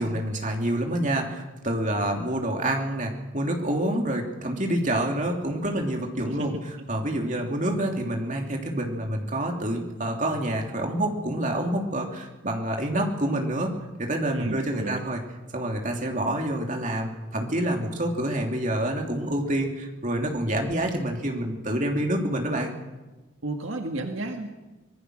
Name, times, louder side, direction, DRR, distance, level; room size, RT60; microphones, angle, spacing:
voice 1, 0.0-6.5 6.9-13.7 14.0-15.2 15.5-22.7, right 1 dB, 40° right, 2 dB, 3.0 m, -27 dB
sound 1, 10.1-11.7, right 3 dB, 5° right, 6.3 m, -53 dB
voice 2, 14.3-15.0 23.4-24.5, right 2 dB, 70° right, 4 dB, 1.8 m, -32 dB
25.5 x 20.0 x 6.4 m, 1.1 s
head